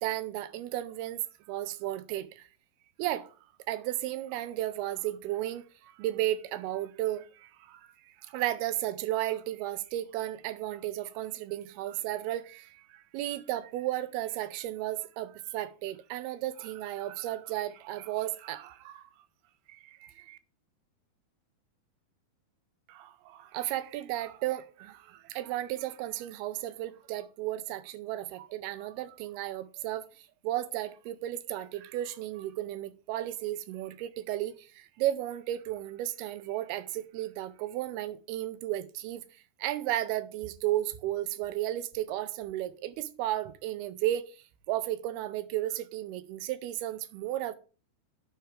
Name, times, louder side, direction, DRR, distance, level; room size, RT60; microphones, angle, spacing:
voice 1, 0.0-2.5 3.0-3.3 3.7-19.1 19.7-20.4 22.9-39.2 39.6-47.6, right 14 dB, 85° right, 2.5 m, -34 dB
9.4 x 4.5 x 4.9 m
omnidirectional pair, 4.6 m